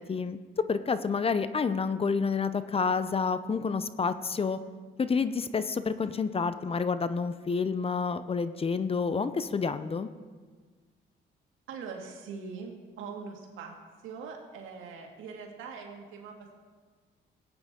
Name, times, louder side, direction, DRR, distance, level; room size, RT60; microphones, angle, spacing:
voice 1, 0.0-4.6 5.0-10.1, left 5 dB, 30° left, 12 dB, 0.6 m, -29 dB
voice 2, 11.7-13.8 14.0-16.5, right 5 dB, 90° right, 1 dB, 1.9 m, -42 dB
17.5 x 8.9 x 3.7 m, 1.5 s
cardioid pair, 90°, 20 cm